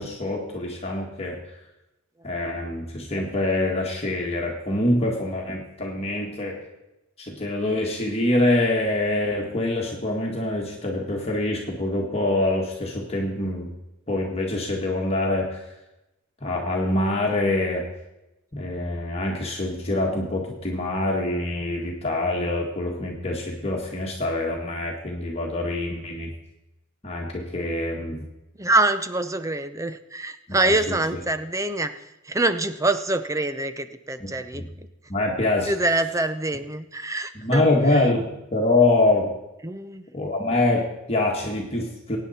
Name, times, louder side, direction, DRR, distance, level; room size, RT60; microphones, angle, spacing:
voice 1, 0.0-1.4 2.2-6.6 7.2-13.7 14.1-15.6 16.4-17.8 18.5-26.3 27.0-28.2 30.6-30.7 34.2-34.3 34.5-34.6 35.1-35.7 37.4-39.3 40.1-42.2, left 2 dB, 30° left, -1 dB, 1.7 m, -25 dB
voice 2, 28.6-34.9 35.6-38.1 39.6-40.1, right 2 dB, 15° right, 11 dB, 0.6 m, -25 dB
23.5 x 9.2 x 4.3 m, 0.96 s
head